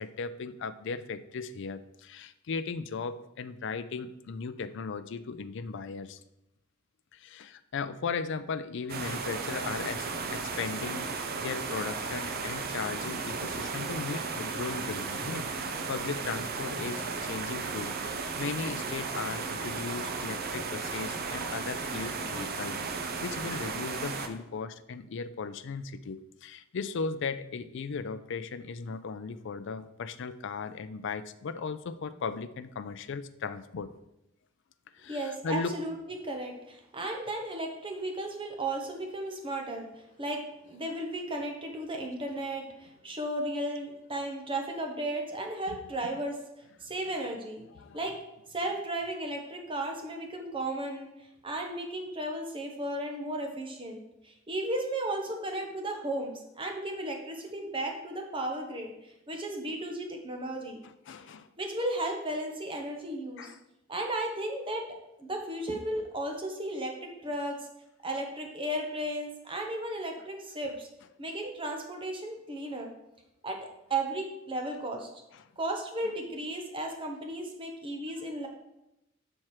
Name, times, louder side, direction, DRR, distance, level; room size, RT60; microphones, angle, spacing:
voice 1, 0.0-6.2 7.1-33.9 34.9-35.8 45.7-45.8 47.7-48.0 61.1-61.5 63.4-63.6 75.3-75.4 76.0-76.1, left 5 dB, 65° left, 12 dB, 0.4 m, -37 dB
sound 1, 8.9-24.3, right 4 dB, 50° right, 0.6 m, -35 dB
voice 2, 35.1-35.9 36.2-46.4 46.8-47.6 47.9-48.2 48.5-51.1 51.4-60.8 61.6-63.5 63.9-64.8 65.2-67.6 68.0-70.9 71.2-72.9 73.4-73.6 73.9-75.1 75.6-78.5, right 1 dB, 25° right, 2 dB, 1.0 m, -35 dB
5.9 x 4.4 x 4.7 m, 0.88 s
head